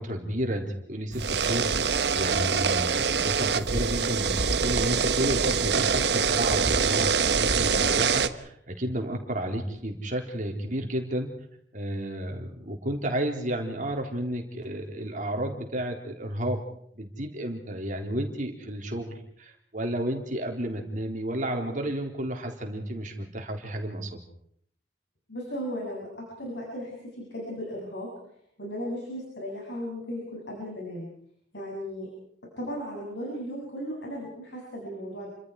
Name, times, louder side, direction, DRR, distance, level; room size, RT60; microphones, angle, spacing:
voice 1, 0.0-4.4 4.6-11.3 11.7-16.6 16.9-24.2, right 1 dB, 45° right, 2 dB, 3.9 m, -32 dB
sound 1, 1.1-8.3, right 5 dB, 65° right, 1.2 m, -24 dB
voice 2, 25.3-28.1 28.6-31.1 31.5-32.1 32.6-35.3, equal, 75° left, -2 dB, 7.7 m, -36 dB
29.5 x 25.5 x 4.8 m, 0.65 s
head